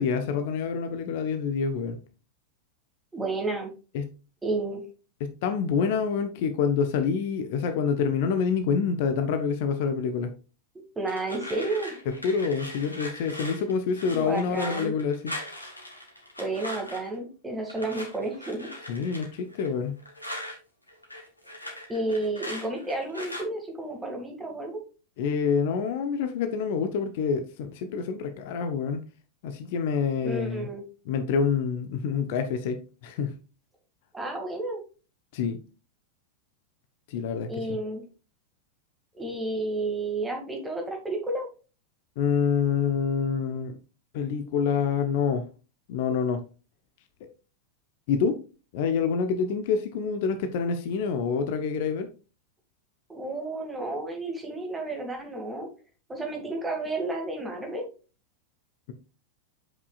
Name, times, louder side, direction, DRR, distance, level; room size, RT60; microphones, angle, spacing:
voice 1, 0.0-2.0 3.9-4.1 5.2-10.3 12.2-15.3 18.9-20.0 25.2-29.0 29.4-30.7 31.1-33.4 35.3-35.6 37.1-37.5 42.2-43.8 44.1-45.5 45.9-46.4 48.1-48.4 48.7-52.1, left 6 dB, 50° left, 0.8 m, -27 dB
voice 2, 3.1-3.7 4.4-4.8 10.7-12.0 14.0-14.9 16.4-18.7 21.9-24.8 30.2-30.8 34.1-34.8 37.5-38.0 39.1-41.5 53.1-55.7 56.1-57.9, right 2 dB, 10° right, 2.1 m, -31 dB
sound 1, 11.1-17.2 17.7-20.6 20.9-23.4, left 1 dB, 85° left, 1.5 m, -40 dB
7.5 x 5.6 x 2.4 m
figure-of-eight pair, 90°, 0 cm